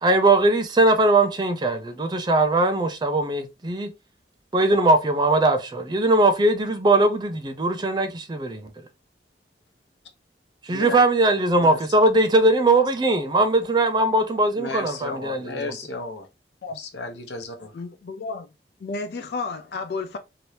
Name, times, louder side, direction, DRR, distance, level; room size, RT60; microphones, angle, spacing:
voice 1, 0.0-3.9 4.5-8.7 10.6-15.7, right 2 dB, 25° right, 0.4 m, -20 dB
voice 2, 14.6-16.3 16.7-17.8, left 3 dB, 80° left, 0.8 m, -34 dB
voice 3, 17.7-18.5 18.8-20.2, left 3 dB, 60° left, 0.4 m, -32 dB
2.9 x 2.6 x 3.1 m
head